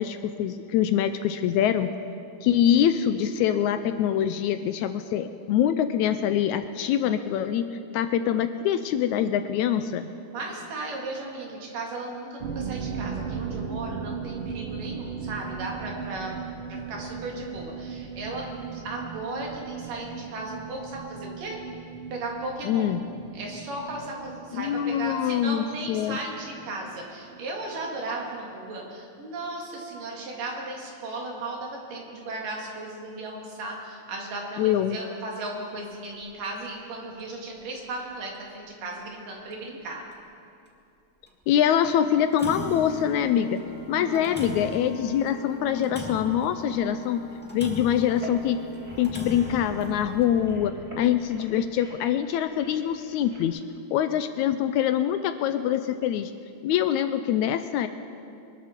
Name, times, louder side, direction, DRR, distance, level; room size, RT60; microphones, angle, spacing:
voice 1, 0.0-1.9 2.4-7.6 7.9-10.1 22.6-23.0 24.5-26.2 34.6-35.0 41.5-43.6 43.9-47.2 47.5-48.6 49.0-53.6 53.9-56.3 56.6-57.9, left 10 dB, 80° left, 10 dB, 1.8 m, -24 dB
voice 2, 10.3-16.3 16.7-21.6 22.1-22.9 23.3-40.0 44.0-44.3, right 2 dB, 85° right, -1 dB, 3.9 m, -36 dB
sound 1, 12.4-27.8 28.0-28.2 28.5-28.6, right 6 dB, 65° right, 1.4 m, -37 dB
sound 2, 36.0-36.2 36.6-36.7 37.2-37.3 38.3-38.4 39.0-39.1 39.5-39.6 40.1-40.2 41.3-41.4 41.8-41.9 42.1-51.3, equal, 15° left, 0.3 m, -39 dB
sound 3, 48.1-53.5, right 1 dB, 20° right, 0.7 m, -44 dB
23.5 x 12.5 x 4.5 m, 2.6 s
omnidirectional pair, 3.7 m